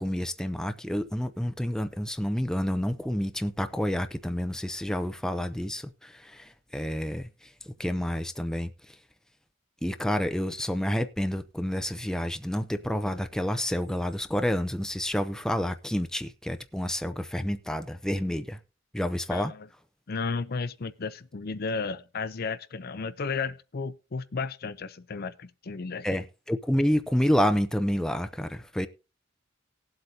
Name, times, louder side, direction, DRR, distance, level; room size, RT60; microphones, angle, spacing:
voice 1, 0.0-9.0 9.8-18.6 18.9-19.5 26.0-28.9, equal, 5° left, 0.6 m, -29 dB
voice 2, 19.3-19.7 20.1-26.2, left 4 dB, 55° left, 0.6 m, -33 dB
19.0 x 7.9 x 2.8 m
head